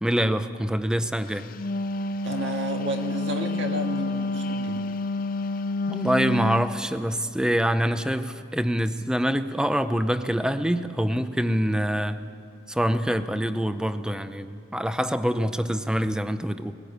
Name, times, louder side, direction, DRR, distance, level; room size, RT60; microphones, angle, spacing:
voice 1, 0.0-1.5 5.9-12.2 12.7-16.7, equal, 5° right, 11 dB, 0.5 m, -25 dB
Wind instrument woodwind instrument, 1.4-6.7, left 2 dB, 45° left, 0.5 m, -29 dB
voice 2, 2.2-4.9, right 1 dB, 60° right, 3 dB, 1.8 m, -31 dB
20.0 x 16.5 x 8.5 m, 2.6 s
head